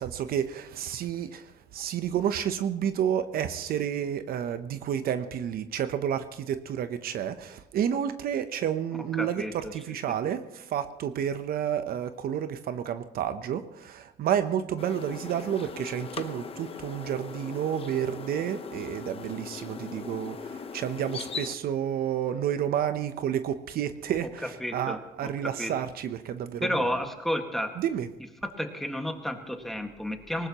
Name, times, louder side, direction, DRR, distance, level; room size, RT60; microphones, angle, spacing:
voice 1, 0.0-26.9 27.8-28.1, right 9 dB, 60° right, 10 dB, 0.9 m, -30 dB
voice 2, 9.2-9.7 10.1-10.2 24.4-25.7 26.6-27.8 28.4-30.5, equal, ahead, 4 dB, 1.8 m, -32 dB
sound 1, 14.8-21.6, left 5 dB, 35° left, 1.0 m, -39 dB
20.0 x 18.5 x 3.0 m, 0.92 s
cardioid pair, 110°, 17 cm